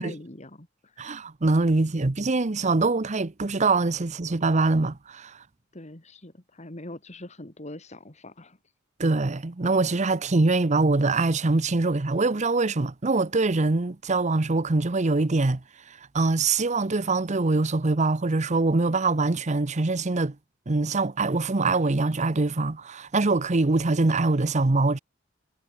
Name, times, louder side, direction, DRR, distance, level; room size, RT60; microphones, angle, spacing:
voice 1, 0.0-1.1 5.7-8.6, left 1 dB, 35° left, 2.7 m, -43 dB
voice 2, 1.0-5.3 9.0-15.6 16.1-20.3 20.7-25.0, right 3 dB, 35° right, 0.8 m, -23 dB
head